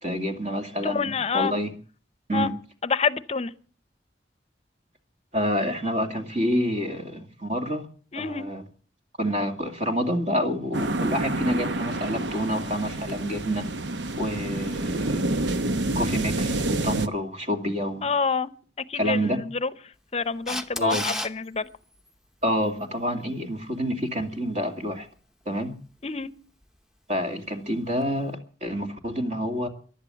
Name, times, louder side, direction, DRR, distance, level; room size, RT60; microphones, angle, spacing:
voice 1, 0.0-1.7 2.3-2.5 5.3-7.9 8.2-8.6 9.2-13.7 14.2-15.2 15.9-18.1 18.9-19.4 20.8-21.1 22.4-25.1 25.5-25.7 27.1-29.7, equal, 40° right, 2.4 m, -28 dB
voice 2, 0.8-1.5 2.3-2.5 2.8-3.5 8.1-8.5 18.0-18.5 18.9-19.2 19.6-19.7 20.1-21.7 26.0-26.3, left 5 dB, 35° left, 0.7 m, -27 dB
sound 1, 10.7-17.1, right 2 dB, 90° right, 0.9 m, -28 dB
Camera, 20.5-21.3 28.0-28.1, left 1 dB, 5° right, 0.9 m, -30 dB
15.5 x 11.5 x 7.0 m
head